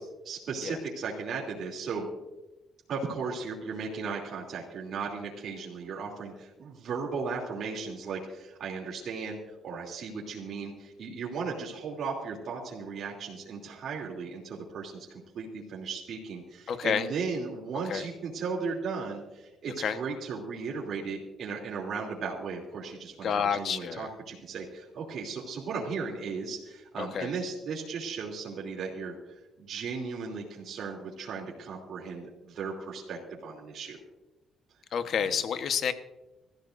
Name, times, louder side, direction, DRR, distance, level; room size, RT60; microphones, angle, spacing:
voice 1, 0.2-2.1 2.9-29.2 29.6-34.0, right 5 dB, 65° right, -3 dB, 3.1 m, -36 dB
voice 2, 16.7-17.1 17.9-18.1 19.8-20.0 23.2-24.1 27.0-27.3 34.9-35.9, left 7 dB, 65° left, 9 dB, 1.2 m, -29 dB
25.5 x 14.5 x 2.7 m, 1.0 s
cardioid pair, 90°, 0 cm